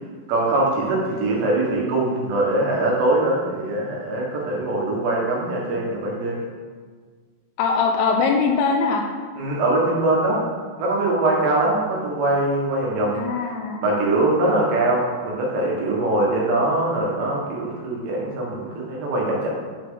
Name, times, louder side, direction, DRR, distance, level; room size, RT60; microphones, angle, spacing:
voice 1, 0.3-6.4 9.4-10.4 10.8-13.5 13.8-19.5, right 2 dB, 75° right, -3 dB, 3.7 m, -22 dB
voice 2, 7.6-9.0 13.2-14.3, left 5 dB, 80° left, 2 dB, 2.4 m, -22 dB
9.8 x 5.8 x 3.8 m, 1.5 s
omnidirectional pair, 5.2 m